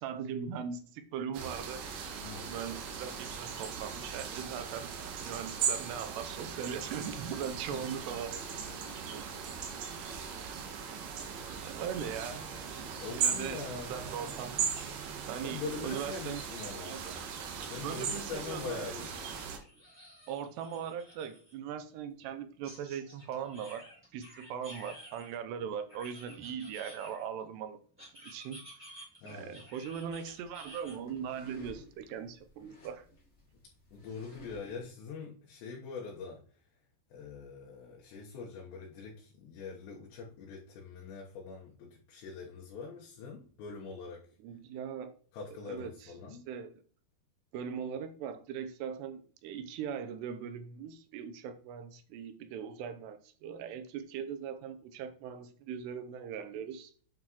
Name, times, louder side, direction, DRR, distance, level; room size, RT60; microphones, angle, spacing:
voice 1, 0.0-1.9 2.4-8.4 8.7-8.8 9.1-10.0 11.1-11.2 11.6-12.4 12.8-12.9 13.2-14.6 15.3-16.4 16.8-17.2 17.8-18.9 20.3-23.8 24.1-27.8 28.2-28.7 29.2-33.0 44.4-45.2 45.5-46.7 47.5-56.9, right 7 dB, 85° right, 2.8 m, -40 dB
sound 1, 1.3-19.6, right 6 dB, 70° right, 2.2 m, -38 dB
voice 2, 2.2-2.5 7.7-7.8 9.7-9.8 13.0-14.1 15.4-17.0 17.7-19.1 29.2-29.6 33.9-36.4 37.1-44.3 45.3-46.5, left 4 dB, 85° left, 3.4 m, -43 dB
sound 2, 18.9-21.5 22.6-25.4 25.9-27.4 28.0-30.9, equal, 5° right, 2.6 m, -52 dB
sound 3, 29.8-34.9, equal, 50° left, 0.8 m, -56 dB
8.7 x 5.9 x 3.0 m
omnidirectional pair, 4.9 m